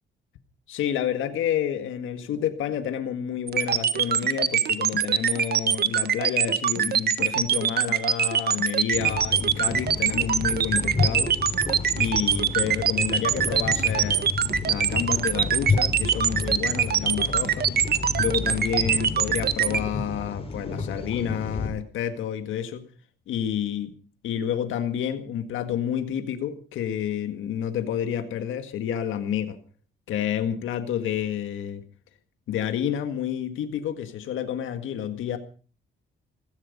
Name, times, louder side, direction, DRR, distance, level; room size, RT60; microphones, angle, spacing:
voice 1, 0.7-11.3 12.0-14.3 14.6-17.7 18.2-22.8 23.3-23.9 24.2-29.6 30.1-31.8 32.5-35.4, left 9 dB, 80° left, 8 dB, 1.8 m, -29 dB
sound 1, 3.5-19.8, right 8 dB, 55° right, 1.4 m, -23 dB
sound 2, 8.9-21.7, left 4 dB, 30° left, 4.6 m, -31 dB
16.0 x 15.5 x 5.3 m, 0.39 s
cardioid pair, 90°, 20 cm